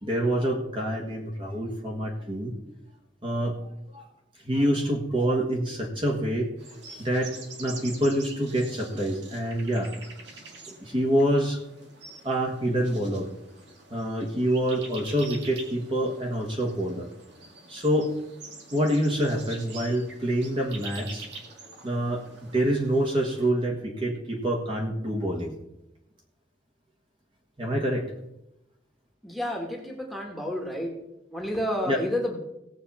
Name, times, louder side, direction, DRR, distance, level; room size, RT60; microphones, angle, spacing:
voice 1, 0.0-2.7 3.2-4.0 4.4-6.5 6.9-7.3 7.6-9.9 10.7-11.6 12.2-13.3 13.9-17.1 17.7-18.1 18.7-21.3 21.8-25.5 27.6-28.1 31.9-32.0, right 1 dB, 25° right, 0 dB, 1.5 m, -26 dB
sound 1, 6.6-23.5, right 3 dB, 65° right, 2.1 m, -46 dB
voice 2, 29.2-31.0 31.3-32.4, left 1 dB, ahead, -1 dB, 1.6 m, -30 dB
17.5 x 7.6 x 4.2 m, 0.88 s
head